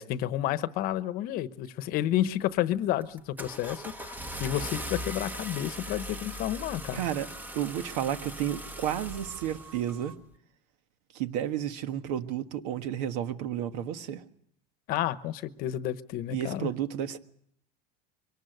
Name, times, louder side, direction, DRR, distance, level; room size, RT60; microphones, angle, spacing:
voice 1, 0.0-7.0 14.9-16.7, left 12 dB, 45° left, 14 dB, 1.0 m, -30 dB
Car / Engine starting, 2.2-2.6 3.0-10.0, equal, 10° right, 0.9 m, -40 dB
sound 1, 4.9-10.2, right 6 dB, 45° right, 2.7 m, -54 dB
voice 2, 6.9-7.3 7.5-10.1 11.1-14.2 16.3-17.2, right 10 dB, 75° right, 10 dB, 1.5 m, -32 dB
24.0 x 18.5 x 7.9 m, 0.68 s
cardioid pair, 160°, 21 cm